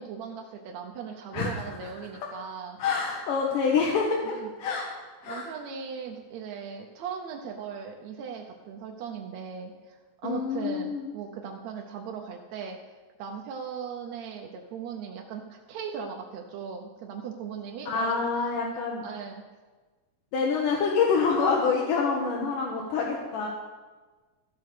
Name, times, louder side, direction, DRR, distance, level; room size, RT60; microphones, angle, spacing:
voice 1, 0.0-2.8 4.4-4.5 5.2-12.8 13.2-18.5 19.0-19.4, right 6 dB, 80° right, 2 dB, 1.6 m, -38 dB
voice 2, 2.8-4.9 5.2-5.5 10.2-11.1 17.9-19.0 20.3-23.5, left 5 dB, 70° left, -2 dB, 2.6 m, -26 dB
13.5 x 6.1 x 6.6 m, 1.3 s
omnidirectional pair, 4.1 m